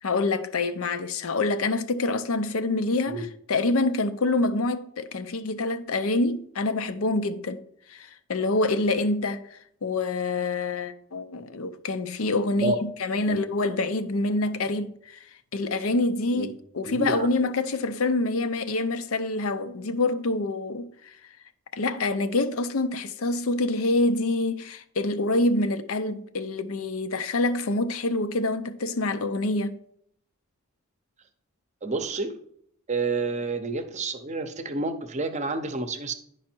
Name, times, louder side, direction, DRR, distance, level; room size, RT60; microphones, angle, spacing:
voice 1, 0.0-7.6 7.9-15.2 15.5-21.1 21.7-29.8, left 2 dB, 70° left, 0.6 m, -26 dB
voice 2, 16.9-17.3 31.8-32.4 32.9-36.1, right 3 dB, 30° right, 0.7 m, -29 dB
10.5 x 4.8 x 4.4 m
head